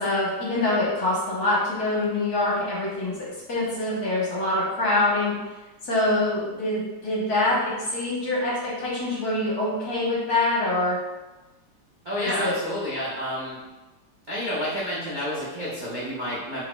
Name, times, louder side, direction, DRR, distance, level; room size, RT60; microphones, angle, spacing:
voice 1, 0.0-5.3 5.8-11.0 12.2-12.6, left 2 dB, 55° left, -6 dB, 1.5 m, -25 dB
voice 2, 12.0-13.6 14.3-16.6, equal, 45° right, -9 dB, 0.6 m, -29 dB
4.5 x 3.6 x 2.3 m, 1.1 s
omnidirectional pair, 2.1 m